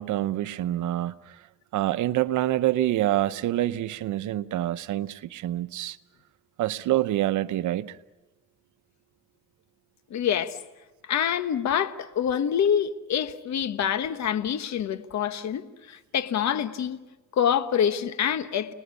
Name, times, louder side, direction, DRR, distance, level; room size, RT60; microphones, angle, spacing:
voice 1, 0.0-1.4 1.7-6.0 6.6-8.0, right 14 dB, 80° right, 0.9 m, -26 dB
voice 2, 10.1-10.6 11.1-17.0 17.4-18.7, left 8 dB, 65° left, 1.3 m, -26 dB
30.0 x 20.0 x 8.3 m
cardioid pair, 90°, 30 cm